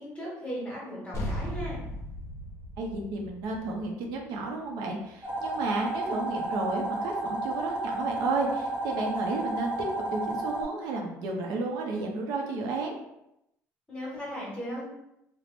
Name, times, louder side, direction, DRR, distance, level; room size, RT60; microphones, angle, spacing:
voice 1, 0.0-1.8 13.9-14.8, equal, 15° left, -4 dB, 1.2 m, -37 dB
sound 1, 1.1-5.9, equal, 45° left, 0.6 m, -38 dB
voice 2, 2.8-9.8 10.1-13.0, right 3 dB, 80° right, 1 dB, 0.5 m, -32 dB
sound 2, 5.2-10.6, right 2 dB, 30° right, 0.9 m, -32 dB
2.5 x 2.0 x 3.3 m, 0.84 s
cardioid pair, 100°, 6 cm